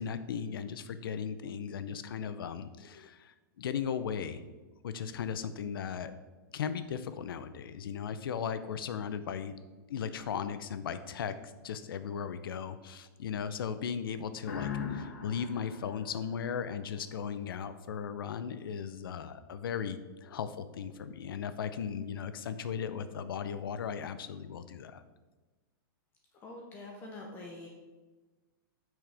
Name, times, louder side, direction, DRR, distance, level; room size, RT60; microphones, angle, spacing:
voice 1, 0.0-4.4 4.8-6.1 6.5-9.5 9.9-25.0, left 7 dB, 85° left, 12 dB, 0.5 m, -37 dB
sound 1, 14.4-17.1, left 7 dB, 50° left, 1.4 m, -40 dB
voice 2, 26.3-27.7, left 2 dB, 15° left, 0 dB, 0.6 m, -45 dB
8.7 x 6.3 x 3.4 m, 1.3 s
supercardioid pair, 175°, 12 cm